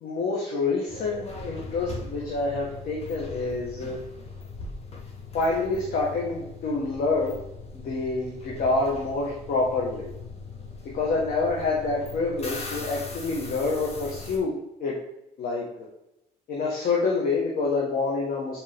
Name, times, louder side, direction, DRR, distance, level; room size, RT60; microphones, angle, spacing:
voice 1, 0.0-4.0 5.3-7.4 7.7-10.1 10.9-14.5 14.8-15.0 15.4-15.9 16.5-18.6, left 3 dB, 60° left, -2 dB, 1.6 m, -27 dB
sound 1, 0.9-14.4, left 3 dB, 35° left, 1.7 m, -40 dB
7.4 x 4.6 x 3.6 m, 0.87 s
cardioid pair, 110°, 17 cm